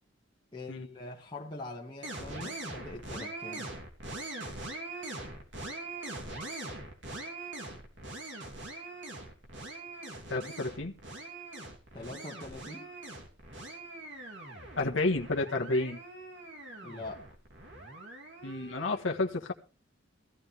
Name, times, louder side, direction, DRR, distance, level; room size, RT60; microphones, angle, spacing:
voice 1, 0.5-3.7 11.9-12.9 16.8-17.3, left 2 dB, 25° left, 1.8 m, -43 dB
sound 1, 2.0-19.0, right 2 dB, 65° right, 3.1 m, -42 dB
voice 2, 10.3-11.0 14.8-16.0 18.4-19.5, left 2 dB, 80° left, 1.5 m, -30 dB
16.5 x 13.5 x 3.5 m
head